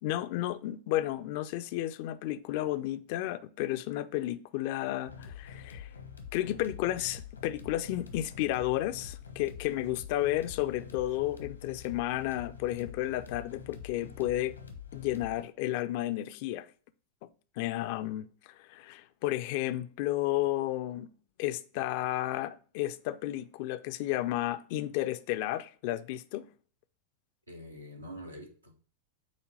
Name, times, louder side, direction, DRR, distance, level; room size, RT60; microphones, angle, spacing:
voice 1, 0.0-5.9 6.3-14.6 14.9-16.7 17.2-17.3 17.6-21.1 21.4-26.5, left 14 dB, 45° left, 0.4 m, -32 dB
sound 1, 5.1-15.4, left 7 dB, 80° left, 1.0 m, -46 dB
voice 2, 27.5-28.8, equal, 85° right, 1.4 m, -45 dB
8.3 x 2.9 x 4.8 m
figure-of-eight pair, 90°, 0 cm